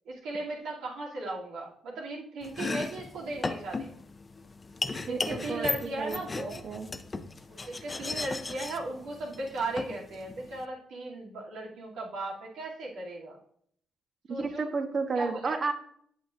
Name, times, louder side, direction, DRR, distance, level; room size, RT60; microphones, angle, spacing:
voice 1, 0.0-4.0 5.1-6.7 7.7-13.4 14.3-14.7 15.1-15.5, right 2 dB, 85° right, -4 dB, 2.7 m, -37 dB
Domestic sounds home sounds, 2.4-10.6, left 3 dB, 30° left, 0.6 m, -36 dB
voice 2, 5.0-6.9 14.3-15.7, right 4 dB, 45° right, 5 dB, 1.2 m, -32 dB
8.6 x 7.3 x 2.6 m, 0.63 s
cardioid pair, 90°, 0 cm